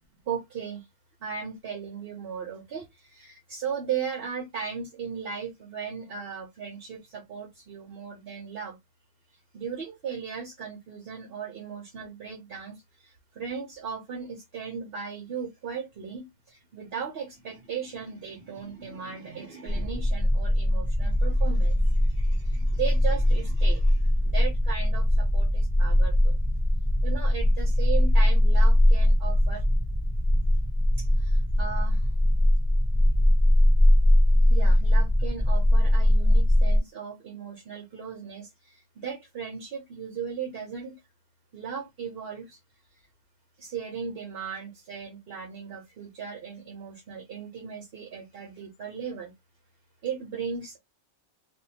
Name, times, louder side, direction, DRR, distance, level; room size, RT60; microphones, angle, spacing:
voice 1, 0.3-0.9 1.2-8.8 9.5-26.4 27.0-29.6 31.0-32.1 34.4-41.0 41.5-42.6 42.9-43.0 43.6-49.3 50.0-50.8, right 7 dB, 65° right, 0.9 m, -37 dB
sound 1, 19.7-36.8, left 1 dB, 35° right, 0.4 m, -21 dB
2.7 x 2.2 x 2.7 m
omnidirectional pair, 1.1 m